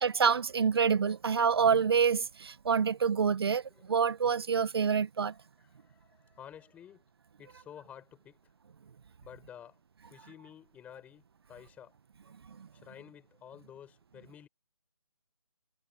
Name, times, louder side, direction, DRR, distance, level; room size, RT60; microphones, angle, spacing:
voice 1, 0.0-3.6 3.9-5.3, right 6 dB, 45° right, 1.3 m, -27 dB
voice 2, 5.6-7.0 7.4-8.4 9.2-9.8 10.1-11.9 12.8-14.5, left 9 dB, 10° left, 6.9 m, -51 dB
figure-of-eight pair, 160°, 18 cm